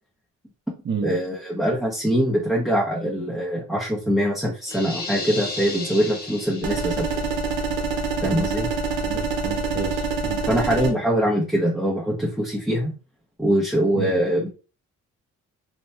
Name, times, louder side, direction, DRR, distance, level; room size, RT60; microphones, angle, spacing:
voice 1, 1.0-7.2 8.2-8.7 10.5-12.9 13.4-14.5, equal, ahead, 0.6 m, -23 dB
sound 1, 4.7-7.2, left 3 dB, 30° left, 0.9 m, -33 dB
sound 2, 6.6-10.9, right 4 dB, 90° right, 0.7 m, -26 dB
voice 2, 9.0-10.4 13.9-14.1, right 5 dB, 40° right, 0.7 m, -31 dB
2.8 x 2.1 x 3.2 m
cardioid pair, 90°, 30 cm